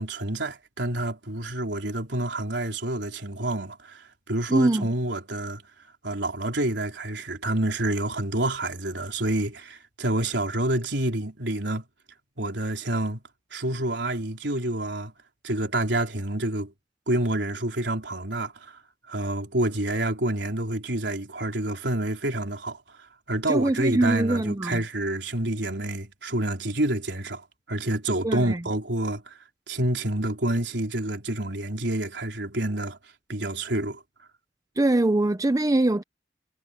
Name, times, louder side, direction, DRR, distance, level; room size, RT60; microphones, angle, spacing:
voice 1, 0.0-5.6 6.0-11.8 12.4-13.2 13.5-15.1 15.4-16.7 17.1-18.8 19.1-23.0 23.3-29.4 29.7-33.0 33.3-34.0, right 1 dB, 75° right, 3.9 m, -28 dB
voice 2, 4.5-4.8 23.5-24.8 28.2-28.6 34.8-36.0, right 2 dB, 20° right, 0.6 m, -22 dB
head